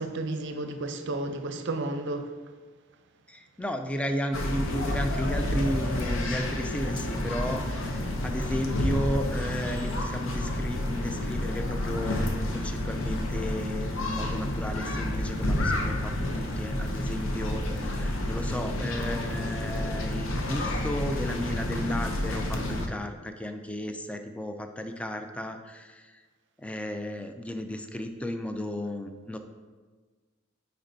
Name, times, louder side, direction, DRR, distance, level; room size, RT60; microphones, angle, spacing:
voice 1, 0.0-2.2, right 2 dB, 60° right, 7 dB, 0.5 m, -32 dB
voice 2, 3.3-26.2 26.6-29.4, equal, 5° left, 6 dB, 0.3 m, -34 dB
sound 1, 4.3-22.9, left 1 dB, 70° left, 0.7 m, -30 dB
9.0 x 4.4 x 2.6 m, 1.4 s
head